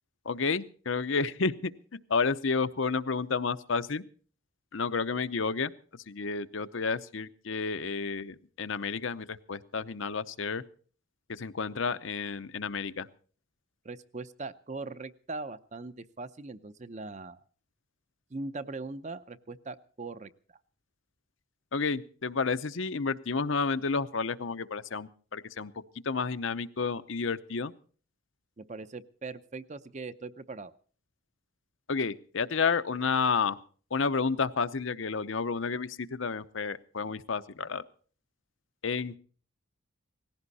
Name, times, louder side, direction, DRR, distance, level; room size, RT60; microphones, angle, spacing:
voice 1, 0.2-1.7 2.1-4.0 4.7-5.7 6.1-10.6 11.3-13.1 21.7-25.7 26.0-27.7 31.9-33.6 33.9-37.8 38.8-39.2, left 4 dB, 75° left, 12 dB, 0.8 m, -31 dB
voice 2, 13.8-17.4 18.3-20.6 28.6-30.7, right 3 dB, 35° right, 13 dB, 0.6 m, -40 dB
18.5 x 16.0 x 4.1 m, 0.43 s
head